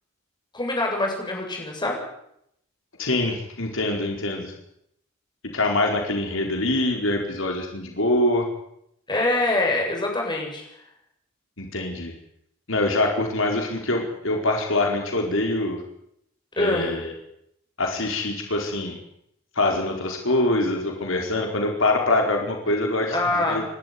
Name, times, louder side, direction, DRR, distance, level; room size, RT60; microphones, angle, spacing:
voice 1, 0.5-2.0 9.1-10.7 16.6-16.9 23.1-23.6, left 2 dB, 20° left, 0 dB, 8.0 m, -24 dB
voice 2, 3.0-4.5 5.5-8.5 11.6-12.1 12.7-15.8 16.6-17.1 17.8-19.0 19.5-23.2 23.5-23.6, left 2 dB, 70° left, 2 dB, 4.7 m, -24 dB
29.0 x 13.5 x 9.7 m, 0.74 s
head